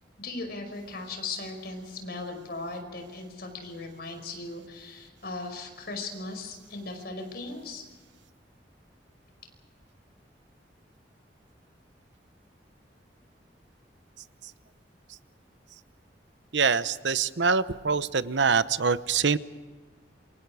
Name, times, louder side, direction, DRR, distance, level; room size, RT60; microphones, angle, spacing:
voice 1, 0.2-7.8, left 3 dB, 60° left, 5 dB, 5.4 m, -38 dB
voice 2, 16.5-19.4, right 5 dB, 90° right, 14 dB, 0.9 m, -24 dB
27.5 x 25.5 x 4.9 m, 1.4 s
head